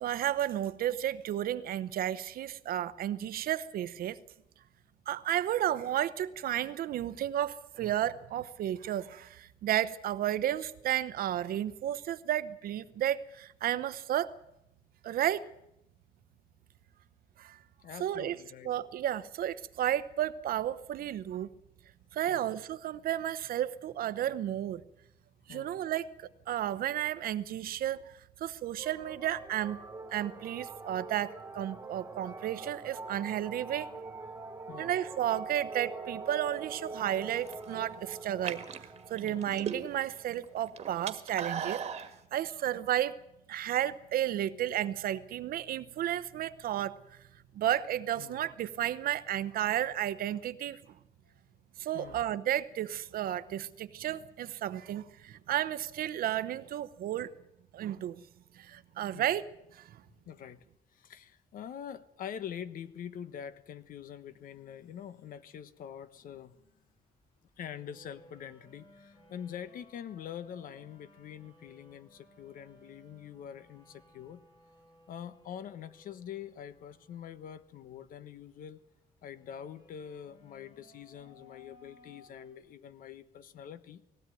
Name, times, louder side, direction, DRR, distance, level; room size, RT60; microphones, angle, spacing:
voice 1, 0.0-4.2 5.1-14.3 15.0-15.5 17.4-17.6 18.0-18.4 18.6-21.5 22.1-24.8 25.5-26.1 26.5-28.1 28.4-29.8 30.1-33.9 34.8-38.6 39.1-41.8 42.3-43.2 43.5-47.2 47.5-50.8 51.8-57.3 57.7-58.2 58.6-59.4 59.7-60.0, right 11 dB, 65° right, 0.9 m, -32 dB
voice 2, 17.8-18.7 22.3-22.5 25.5-25.8 34.7-35.0 39.2-39.5 48.2-48.4 51.9-52.3 59.1-59.3 60.2-60.7 60.9-66.6 67.6-74.4 75.1-78.8 79.2-84.0, left 9 dB, 60° left, 1.2 m, -45 dB
sound 1, 28.8-40.6, right 4 dB, 15° right, 1.4 m, -44 dB
sound 2, 37.3-37.7 38.3-40.1 40.4-42.1, right 7 dB, 40° right, 1.6 m, -37 dB
sound 3, 62.6-82.5, left 1 dB, 35° left, 6.0 m, -61 dB
20.0 x 16.5 x 9.2 m
cardioid pair, 175°, 16 cm